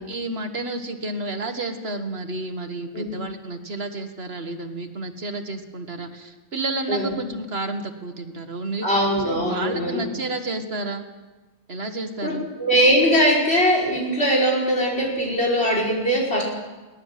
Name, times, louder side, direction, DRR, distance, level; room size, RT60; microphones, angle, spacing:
voice 1, 0.1-11.0 11.7-12.4, right 2 dB, 75° right, 7 dB, 2.0 m, -31 dB
voice 2, 8.8-10.1 12.2-16.4, equal, 85° left, -1 dB, 5.5 m, -21 dB
22.0 x 17.5 x 7.6 m, 1.2 s
omnidirectional pair, 1.0 m